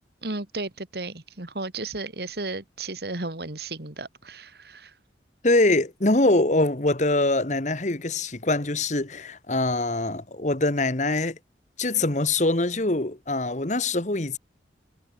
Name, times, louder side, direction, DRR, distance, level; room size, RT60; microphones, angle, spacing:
voice 1, 0.2-4.9, right 2 dB, 60° right, 2.2 m, -34 dB
voice 2, 5.4-11.4 11.8-14.4, left 2 dB, 40° left, 1.5 m, -23 dB
head